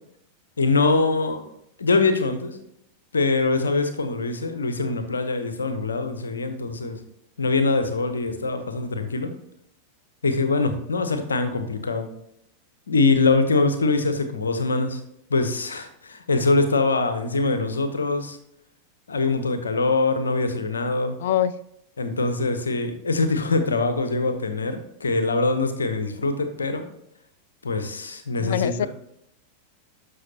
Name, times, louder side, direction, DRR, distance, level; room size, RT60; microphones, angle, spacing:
voice 1, 0.6-1.4 1.8-2.6 3.1-7.0 7.4-9.3 10.2-12.1 12.9-15.0 15.3-18.4 19.1-21.2 22.0-26.8 27.6-28.9, left 3 dB, 75° left, 8 dB, 0.9 m, -23 dB
voice 2, 21.2-21.5 28.4-28.9, left 11 dB, 55° left, 16 dB, 0.4 m, -23 dB
12.5 x 5.5 x 2.8 m, 0.77 s
figure-of-eight pair, 90°, 0 cm